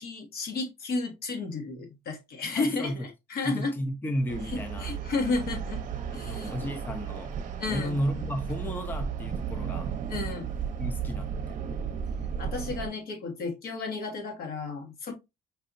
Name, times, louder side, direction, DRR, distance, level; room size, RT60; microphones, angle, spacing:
voice 1, 0.0-3.7 4.5-5.8 6.1-6.7 7.6-8.0 10.1-10.5 12.4-15.1, left 3 dB, 65° left, 1.4 m, -32 dB
voice 2, 2.5-3.1 3.4-4.9 6.2-7.3 7.7-9.9 10.8-11.6, equal, 10° left, 0.6 m, -33 dB
sound 1, 4.3-12.9, right 7 dB, 50° right, 0.7 m, -34 dB
5.3 x 2.9 x 2.6 m
cardioid pair, 110°, 17 cm